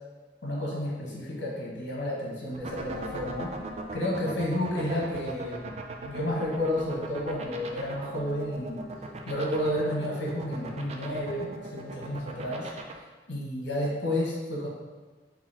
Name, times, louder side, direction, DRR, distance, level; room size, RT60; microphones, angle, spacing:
voice 1, 0.4-3.5 3.9-8.8 9.3-12.7 13.3-14.7, left 1 dB, 75° left, -3 dB, 1.3 m, -31 dB
sound 1, 2.5-12.9, right 3 dB, 35° right, 0.4 m, -38 dB
3.9 x 2.9 x 4.3 m, 1.3 s
head